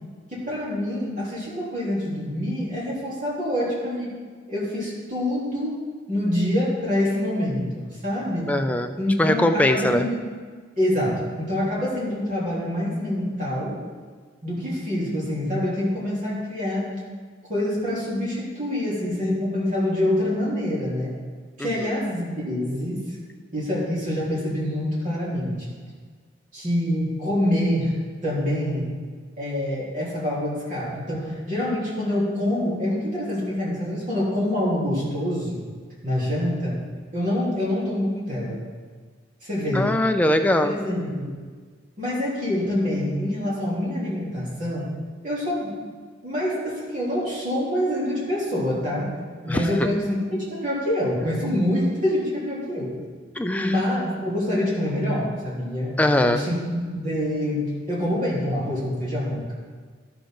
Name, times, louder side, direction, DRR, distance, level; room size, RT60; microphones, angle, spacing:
voice 1, 0.3-4.2 4.5-5.8 6.1-8.5 9.0-10.2 10.8-13.8 14.4-16.9 17.5-21.1 21.6-23.0 23.5-25.8 26.5-27.9 28.2-28.8 29.4-35.6 36.0-36.8 37.1-38.6 39.4-39.9 40.6-41.3 42.0-44.9 45.2-45.8 46.2-49.1 49.4-52.9 53.6-56.0 56.2-56.6 56.9-59.5, left 1 dB, 45° right, -7 dB, 3.2 m, -26 dB
voice 2, 8.5-10.1 21.6-21.7 39.7-40.8 49.5-49.7 53.4-53.7 56.0-56.4, left 1 dB, 10° left, 6 dB, 0.4 m, -21 dB
13.0 x 7.0 x 3.8 m, 1.5 s
head